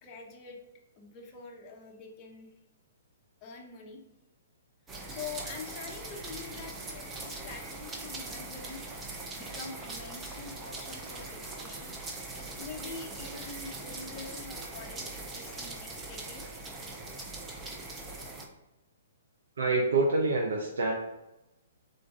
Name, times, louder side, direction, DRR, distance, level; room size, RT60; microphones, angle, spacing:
voice 1, 0.0-0.6 1.0-2.5 3.4-4.0 5.1-8.8 9.3-11.9 12.6-16.4, left 4 dB, 25° left, -1 dB, 0.7 m, -45 dB
sound 1, 4.9-18.5, right 2 dB, 15° right, 0.5 m, -41 dB
voice 2, 19.6-20.9, right 3 dB, 80° right, 0 dB, 0.6 m, -26 dB
3.8 x 2.5 x 4.5 m, 0.95 s
hypercardioid pair, 145°, 0 cm